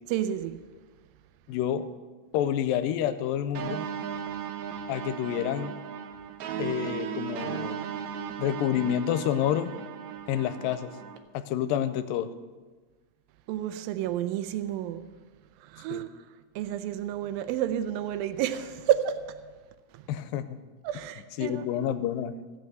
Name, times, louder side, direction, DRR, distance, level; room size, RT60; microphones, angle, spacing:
voice 1, 0.1-0.6 13.5-15.1 15.6-16.2 16.6-19.4 19.9-20.1 20.8-21.6, right 11 dB, 85° right, 2.4 m, -30 dB
voice 2, 1.5-1.9 2.3-3.8 4.9-5.8 6.6-7.8 8.4-9.7 10.3-10.9 11.3-12.3 15.9-16.0 20.1-20.6 21.4-22.4, left 10 dB, 85° left, 2.3 m, -28 dB
sound 1, 3.5-11.2, right 8 dB, 70° right, 1.8 m, -36 dB
16.0 x 5.9 x 7.7 m
omnidirectional pair, 4.0 m